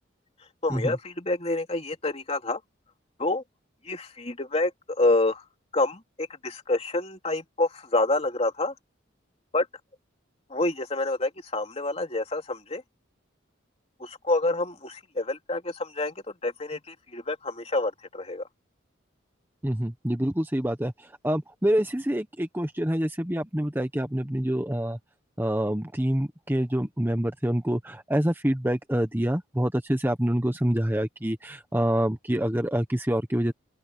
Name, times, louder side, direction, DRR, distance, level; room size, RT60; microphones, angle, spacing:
voice 1, 0.6-2.6 3.2-3.4 3.8-5.4 5.7-8.7 9.5-9.7 10.5-12.8 14.0-16.1 16.4-18.4, left 2 dB, 30° left, 3.2 m, -27 dB
voice 2, 19.6-25.0 25.4-33.5, right 1 dB, 10° right, 1.0 m, -26 dB
open air
head